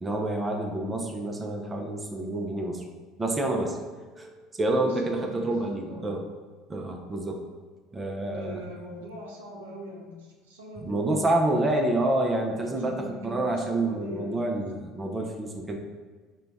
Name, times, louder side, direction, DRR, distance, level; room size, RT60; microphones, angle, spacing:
voice 1, 0.0-2.8 3.2-3.8 4.1-4.3 4.6-6.2 6.7-7.4 7.9-8.6 10.9-15.8, right 2 dB, 25° right, 2 dB, 0.5 m, -28 dB
voice 2, 4.8-5.6 5.9-6.1 8.3-11.1 12.5-14.7, equal, 85° right, -1 dB, 0.6 m, -42 dB
3.8 x 2.3 x 3.4 m, 1.4 s
hypercardioid pair, 70°, 0 cm